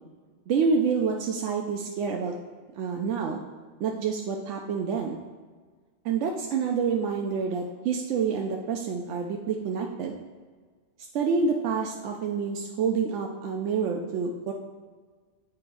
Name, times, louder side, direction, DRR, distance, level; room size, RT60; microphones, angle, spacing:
voice 1, 0.5-2.3 2.8-3.4 3.8-5.2 6.0-10.1 11.1-14.5, right 5 dB, 90° right, 1 dB, 0.9 m, -28 dB
8.5 x 4.7 x 2.6 m, 1.5 s
omnidirectional pair, 1.2 m